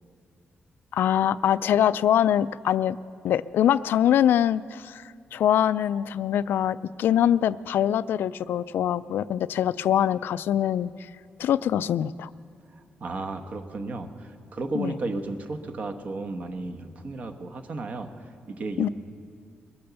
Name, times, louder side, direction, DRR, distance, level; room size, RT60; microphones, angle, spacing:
voice 1, 0.9-3.0 3.2-11.1 11.4-12.3 14.7-14.9 18.8-18.9, left 10 dB, 80° left, 16 dB, 0.3 m, -23 dB
voice 2, 13.0-18.9, right 3 dB, 45° right, 7 dB, 1.0 m, -34 dB
21.5 x 8.7 x 6.9 m, 2.2 s
wide cardioid pair, 145°, 4 cm